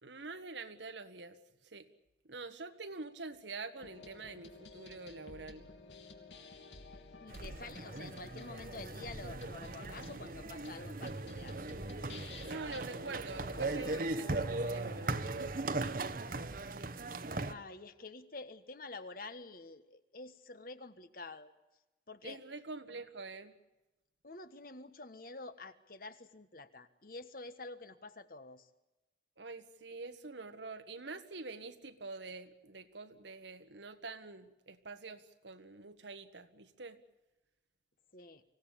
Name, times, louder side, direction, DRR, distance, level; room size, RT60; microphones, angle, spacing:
voice 1, 0.0-1.9 2.3-5.7 12.4-15.6 16.0-16.2 22.2-23.5 29.4-37.0, right 3 dB, 90° right, 8 dB, 1.7 m, -46 dB
sound 1, 3.8-12.8, left 3 dB, 90° left, 3.1 m, -53 dB
voice 2, 7.2-11.6 17.4-21.5 22.1-22.4 24.2-28.7 38.1-38.4, left 3 dB, 55° left, 10 dB, 1.4 m, -48 dB
sound 2, 7.3-17.5, right 2 dB, 50° right, 1.1 m, -39 dB
sound 3, 10.8-16.8, equal, 20° left, 1.2 m, -56 dB
25.5 x 17.0 x 8.8 m, 1.0 s
head